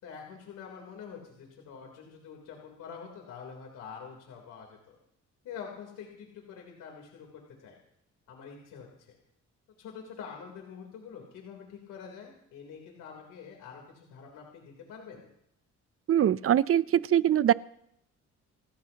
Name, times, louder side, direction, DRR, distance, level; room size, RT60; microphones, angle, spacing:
voice 1, 0.0-5.0 5.4-7.3 7.6-7.8 8.3-9.2 9.8-15.3, left 6 dB, 85° left, 0 dB, 3.6 m, -46 dB
voice 2, 16.1-17.5, right 10 dB, 50° right, 18 dB, 0.6 m, -23 dB
29.5 x 13.5 x 3.0 m, 0.76 s
cardioid pair, 90°, 30 cm